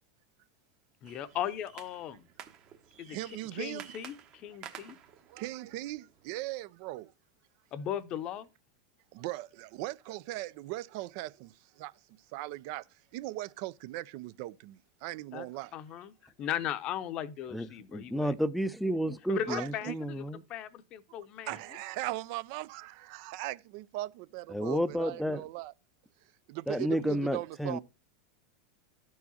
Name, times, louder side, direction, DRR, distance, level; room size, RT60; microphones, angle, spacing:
voice 1, 1.0-2.3 3.0-3.2 3.5-5.0 7.7-8.5 15.3-15.5 15.7-18.3 19.3-20.2 20.5-21.5, left 10 dB, 45° left, 0.7 m, -37 dB
sound 1, 1.0-6.5, right 9 dB, 45° right, 1.1 m, -52 dB
voice 2, 3.1-3.9 5.3-7.1 9.1-11.9 12.3-16.0 19.5-20.0 21.5-25.7 26.5-27.8, right 17 dB, 60° right, 0.4 m, -39 dB
voice 3, 17.5-20.4 24.5-25.4 26.7-27.8, equal, ahead, 0.4 m, -31 dB
13.0 x 4.7 x 2.7 m
hypercardioid pair, 105°, 2 cm